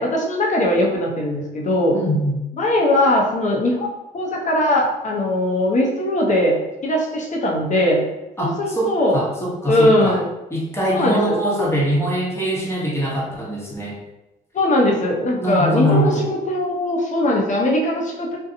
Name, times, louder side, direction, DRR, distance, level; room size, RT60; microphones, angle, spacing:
voice 1, 0.0-2.0 2.6-3.9 4.1-6.5 6.8-8.0 8.4-9.2 9.7-10.3 10.9-11.4 14.5-18.4, left 1 dB, 40° left, -1 dB, 0.7 m, -20 dB
voice 2, 1.9-2.4 8.4-10.2 10.5-14.0 15.4-16.3, equal, 15° left, -4 dB, 1.0 m, -22 dB
2.6 x 2.3 x 2.6 m, 0.98 s
supercardioid pair, 70°, 19 cm